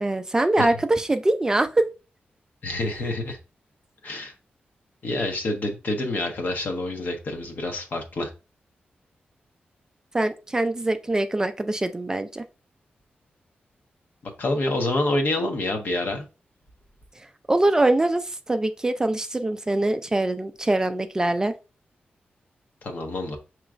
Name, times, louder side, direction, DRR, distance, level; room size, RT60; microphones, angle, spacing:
voice 1, 0.0-1.9 10.1-12.4 17.5-21.5, right 2 dB, 20° right, 0.3 m, -23 dB
voice 2, 2.6-3.4 4.0-4.3 5.0-8.3 14.4-16.2 22.8-23.4, left 2 dB, 60° left, 1.0 m, -27 dB
5.9 x 3.0 x 2.5 m
wide cardioid pair, 130°, 4 cm